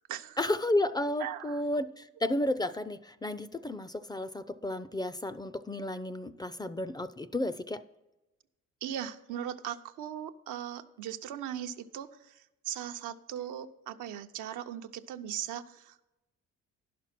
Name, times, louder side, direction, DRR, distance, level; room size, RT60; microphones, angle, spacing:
voice 1, 0.4-7.8, left 1 dB, 15° left, 13 dB, 0.3 m, -32 dB
voice 2, 1.2-1.8 8.8-16.1, right 10 dB, 85° right, 7 dB, 0.6 m, -39 dB
11.0 x 6.0 x 5.9 m, 0.99 s
cardioid pair, 90°, 30 cm